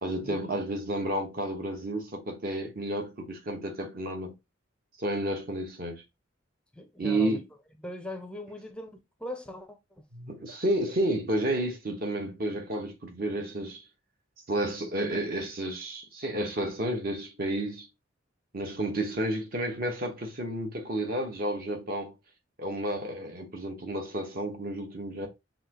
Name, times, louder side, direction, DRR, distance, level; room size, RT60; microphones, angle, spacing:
voice 1, 0.0-4.3 5.0-6.0 7.0-7.4 10.1-13.8 14.5-17.9 18.5-22.1 22.6-25.3, right 1 dB, 50° right, 1.2 m, -31 dB
voice 2, 6.8-7.4 7.8-10.0, left 1 dB, 5° left, 0.5 m, -40 dB
5.7 x 3.1 x 2.9 m
head